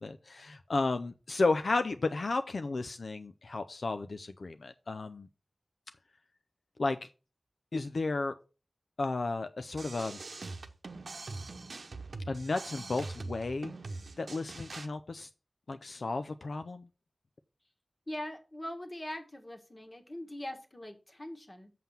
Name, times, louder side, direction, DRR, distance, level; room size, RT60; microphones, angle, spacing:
voice 1, 0.0-5.3 6.8-7.1 7.7-8.3 9.0-10.2 12.3-13.7 14.2-15.3 15.7-16.9, left 3 dB, 80° left, 8 dB, 0.5 m, -33 dB
sound 1, 9.7-14.9, right 3 dB, 85° right, 0.8 m, -43 dB
voice 2, 18.1-21.7, left 1 dB, 30° left, 4 dB, 1.7 m, -42 dB
7.5 x 5.6 x 5.6 m, 0.33 s
wide cardioid pair, 70°, 0 cm